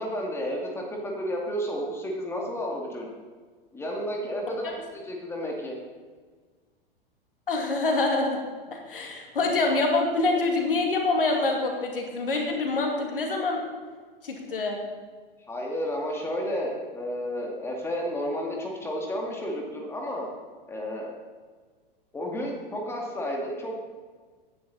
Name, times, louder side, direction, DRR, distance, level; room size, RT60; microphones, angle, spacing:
voice 1, 0.0-3.1 3.7-5.8 15.5-20.3 20.7-21.1 22.1-23.8, equal, 10° left, -1 dB, 2.3 m, -32 dB
voice 2, 4.5-4.8 7.5-8.4 8.7-13.6 14.2-14.8, left 3 dB, 65° left, 2 dB, 2.5 m, -26 dB
16.5 x 9.9 x 4.1 m, 1.5 s
figure-of-eight pair, 100°, 29 cm